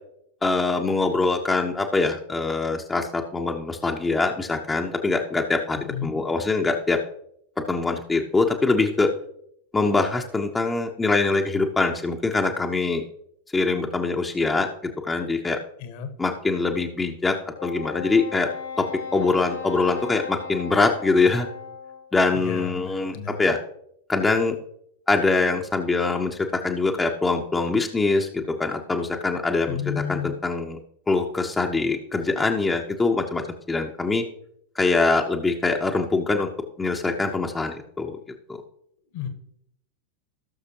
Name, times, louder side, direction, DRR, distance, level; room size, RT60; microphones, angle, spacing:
voice 1, 0.4-7.0 7.7-9.1 9.7-13.0 13.5-14.7 15.0-15.6 16.2-17.4 17.6-18.5 18.8-21.5 22.1-23.6 24.1-24.6 25.1-30.8 31.1-34.2 34.7-36.5 36.8-38.2 38.5-38.6, left 3 dB, 10° left, 2 dB, 0.8 m, -23 dB
voice 2, 5.8-6.2 15.8-16.1 22.3-23.4 29.7-30.3 39.1-39.3, left 8 dB, 50° left, 9 dB, 1.3 m, -32 dB
Wind instrument woodwind instrument, 17.6-22.2, left 6 dB, 65° left, 1.5 m, -36 dB
17.5 x 6.6 x 2.9 m, 0.72 s
figure-of-eight pair, 90°, 0 cm